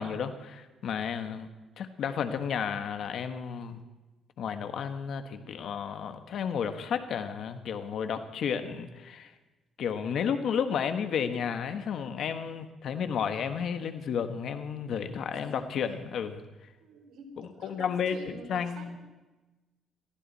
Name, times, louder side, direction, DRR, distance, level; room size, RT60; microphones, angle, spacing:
voice 1, 0.0-1.5 1.8-3.8 4.4-9.3 9.8-16.4 17.4-19.0, left 7 dB, 70° left, 8 dB, 1.3 m, -32 dB
voice 2, 16.8-19.0, right 3 dB, 80° right, 3 dB, 3.7 m, -47 dB
22.0 x 15.0 x 4.2 m, 1.1 s
cardioid pair, 90°, 0 cm